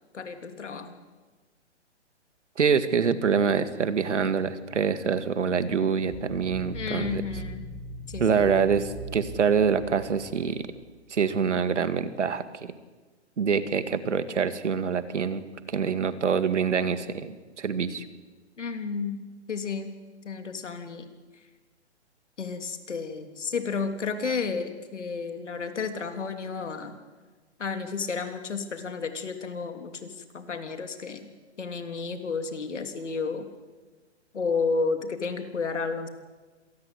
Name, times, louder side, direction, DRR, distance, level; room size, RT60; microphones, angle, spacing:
voice 1, 0.1-1.0 6.7-7.6 8.1-8.5 18.6-19.2 19.5-20.0 20.2-21.1 22.4-26.9 27.6-31.3 31.6-33.5 34.3-36.1, left 4 dB, 80° left, 7 dB, 3.4 m, -32 dB
voice 2, 2.6-7.2 8.2-10.7 11.1-12.7 13.4-18.0, right 6 dB, 75° right, 11 dB, 2.2 m, -25 dB
sound 1, 6.1-10.8, right 2 dB, 35° right, 3.8 m, -40 dB
26.5 x 19.5 x 8.3 m, 1.3 s
hypercardioid pair, 140°, 35 cm